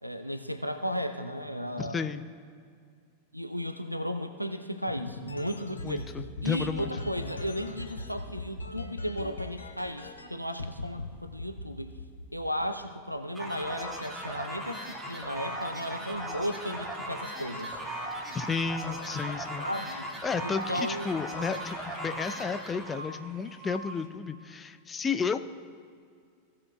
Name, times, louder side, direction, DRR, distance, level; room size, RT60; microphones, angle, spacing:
voice 1, 0.0-2.0 3.3-6.1 6.4-11.9 12.3-17.7 19.6-20.1 20.4-21.1, equal, 90° right, 8 dB, 0.4 m, -35 dB
voice 2, 1.8-2.2 5.8-6.9 18.3-19.7 20.2-25.4, left 5 dB, 20° left, 10 dB, 0.4 m, -32 dB
sound 1, 4.9-10.3 10.6-11.0 11.4-12.8, left 2 dB, 75° left, 0.8 m, -39 dB
sound 2, 13.3-23.1, right 1 dB, 5° right, 1.8 m, -38 dB
sound 3, 16.1-24.1, right 1 dB, 30° right, 1.3 m, -45 dB
16.5 x 7.4 x 2.2 m, 2.2 s
figure-of-eight pair, 90°, 0 cm